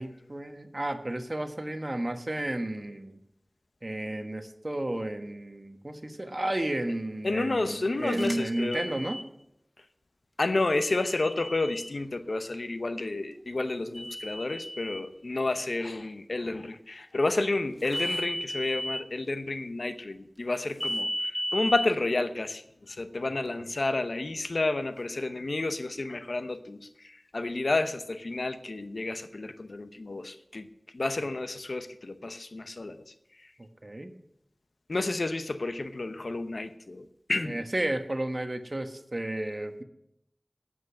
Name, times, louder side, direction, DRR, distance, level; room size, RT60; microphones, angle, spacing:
voice 1, 0.0-3.2 3.8-9.2 33.6-34.1 37.5-39.8, right 1 dB, 40° right, 6 dB, 1.3 m, -32 dB
voice 2, 7.2-9.0 10.4-26.8 27.0-30.7 30.9-33.0 34.9-37.6, left 2 dB, 75° left, 9 dB, 0.8 m, -30 dB
sound 1, 8.1-9.3 10.8-11.9 13.9-15.0 17.9-19.0 20.8-21.9, equal, 25° left, 1.0 m, -34 dB
9.1 x 8.2 x 8.6 m, 0.79 s
wide cardioid pair, 55°, 0 cm